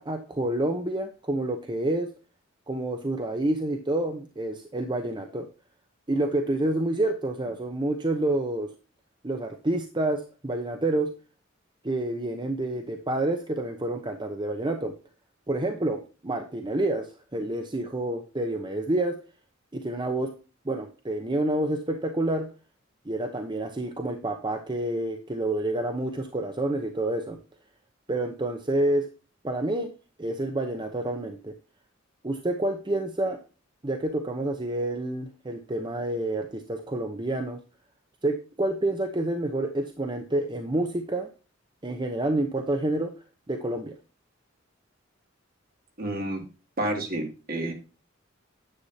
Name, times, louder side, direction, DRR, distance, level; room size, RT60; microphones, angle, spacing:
voice 1, 0.0-2.1 2.7-5.5 6.1-8.7 9.2-11.1 11.8-14.9 15.5-19.2 19.7-20.3 20.6-22.5 23.1-27.4 28.1-29.0 29.4-29.9 30.2-31.5 32.2-33.4 33.8-37.6 38.2-41.3 41.8-43.1 43.5-43.9, right 1 dB, 25° right, 5 dB, 0.8 m, -28 dB
voice 2, 46.0-46.4 46.8-47.7, right 1 dB, 50° right, 2 dB, 2.5 m, -29 dB
9.8 x 8.1 x 2.8 m, 0.35 s
head